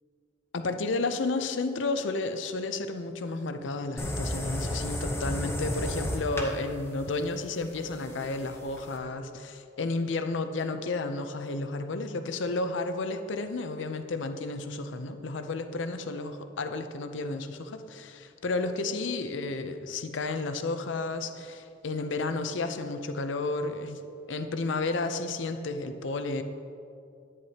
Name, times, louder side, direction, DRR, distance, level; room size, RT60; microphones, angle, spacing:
voice 1, 0.5-16.3 16.6-24.0 24.3-26.4, left 3 dB, 75° left, 8 dB, 0.6 m, -32 dB
sound 1, 4.0-9.0, left 1 dB, 15° left, 0.7 m, -33 dB
11.0 x 9.6 x 2.8 m, 2.5 s
head